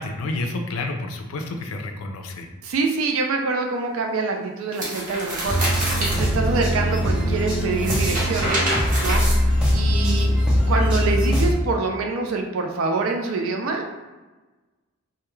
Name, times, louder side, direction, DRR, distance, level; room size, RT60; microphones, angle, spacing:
voice 1, 0.0-2.5, left 2 dB, 75° left, 4 dB, 0.4 m, -29 dB
voice 2, 2.6-9.4 9.7-10.3 10.7-13.9, right 3 dB, 70° right, 3 dB, 0.4 m, -25 dB
sound 1, 4.7-6.2 7.7-10.0, right 1 dB, 40° right, 0.7 m, -26 dB
sound 2, 5.4-11.5, equal, 5° right, 0.5 m, -21 dB
2.2 x 2.1 x 3.0 m, 1.2 s
head